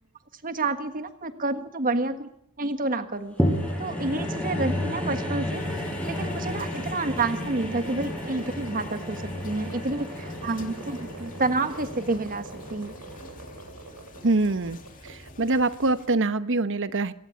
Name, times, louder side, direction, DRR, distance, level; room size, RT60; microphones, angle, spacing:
voice 1, 0.4-2.3 2.6-3.3 3.8-5.6 6.0-12.9, right 2 dB, 40° right, 9 dB, 1.6 m, -29 dB
sound 1, 3.4-13.9 14.5-14.6, left 1 dB, 5° left, 6.2 m, -32 dB
sound 2, 3.4-16.0, right 2 dB, 85° right, 7.1 m, -44 dB
sound 3, 5.5-16.1, left 2 dB, 40° left, 2.9 m, -48 dB
voice 2, 14.2-14.8 15.4-17.1, right 2 dB, 60° right, 13 dB, 1.1 m, -24 dB
26.0 x 18.0 x 8.5 m, 0.73 s
head